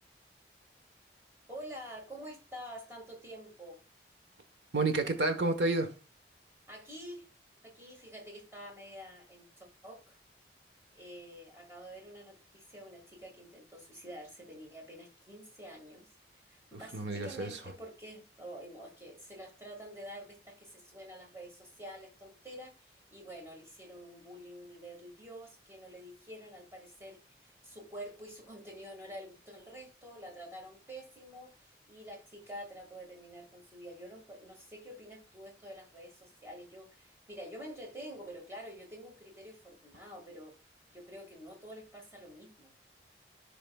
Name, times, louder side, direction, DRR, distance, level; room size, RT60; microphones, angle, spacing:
voice 1, 1.5-3.8 6.7-7.3 7.6-10.2 10.9-16.1 16.3-40.5 40.9-42.7, equal, 15° right, 1.9 m, -48 dB
voice 2, 4.7-5.9 16.7-17.6, right 2 dB, 85° right, 1.1 m, -30 dB
14.5 x 4.9 x 2.3 m
head